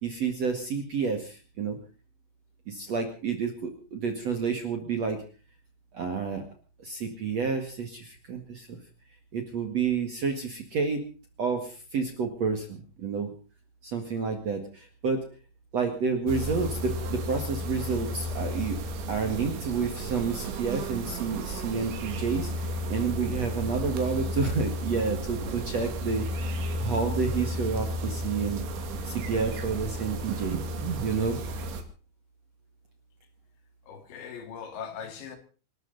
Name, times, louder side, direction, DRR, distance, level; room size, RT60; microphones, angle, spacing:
voice 1, 0.0-1.8 2.7-5.2 5.9-6.4 6.8-8.8 9.3-11.0 11.4-13.3 13.8-15.2 15.7-18.8 19.1-28.6 29.0-30.6 31.0-31.4, right 5 dB, 50° right, 2.2 m, -30 dB
sound 1, 16.3-31.8, equal, 75° right, 4.5 m, -33 dB
voice 2, 33.8-35.4, left 7 dB, 70° left, 4.5 m, -40 dB
27.5 x 13.0 x 4.0 m
omnidirectional pair, 5.4 m